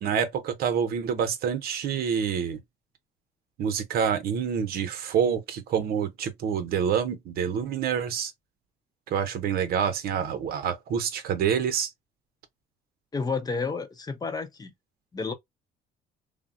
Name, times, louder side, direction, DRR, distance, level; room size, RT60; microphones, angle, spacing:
voice 1, 0.0-2.6 3.6-8.3 9.1-11.9, right 7 dB, 65° right, 0.7 m, -27 dB
voice 2, 13.1-14.7 15.1-15.3, left 4 dB, 25° left, 0.6 m, -30 dB
3.4 x 2.1 x 2.4 m
cardioid pair, 110°, 17 cm